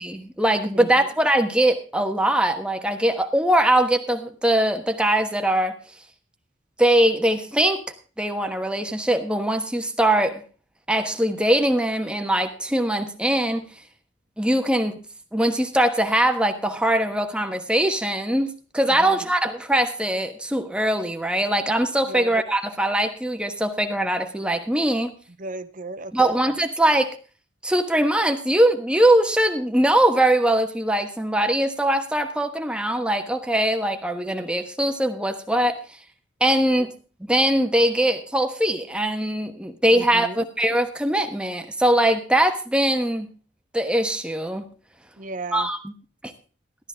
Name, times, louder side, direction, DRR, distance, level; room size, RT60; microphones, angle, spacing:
voice 1, 0.1-5.8 6.8-7.8 8.2-10.4 10.9-13.7 14.4-15.0 15.3-25.1 26.1-27.2 27.6-35.8 36.4-37.0 37.3-43.3 43.7-44.7 45.5-45.9, right 1 dB, 5° right, 6 dB, 1.2 m, -21 dB
voice 2, 25.4-26.4 36.7-36.9 39.9-40.5 45.2-45.7, right 2 dB, 45° right, 10 dB, 0.8 m, -35 dB
13.0 x 13.0 x 3.5 m, 0.36 s
head